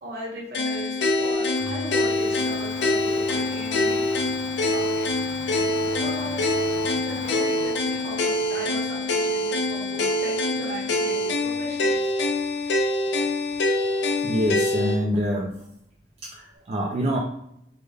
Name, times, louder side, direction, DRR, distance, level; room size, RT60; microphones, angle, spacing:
voice 1, 0.0-4.0 4.6-5.1 5.9-6.4 7.0-12.1, right 1 dB, 60° right, -3 dB, 1.2 m, -37 dB
sound 1, 0.5-15.0, left 2 dB, 80° left, 0.4 m, -25 dB
Domestic sounds home sounds, 0.7-16.6, left 1 dB, 10° left, 0.7 m, -42 dB
voice 2, 14.0-15.5 16.2-17.2, equal, 35° right, -2 dB, 0.4 m, -26 dB
3.3 x 2.1 x 3.3 m, 0.75 s
head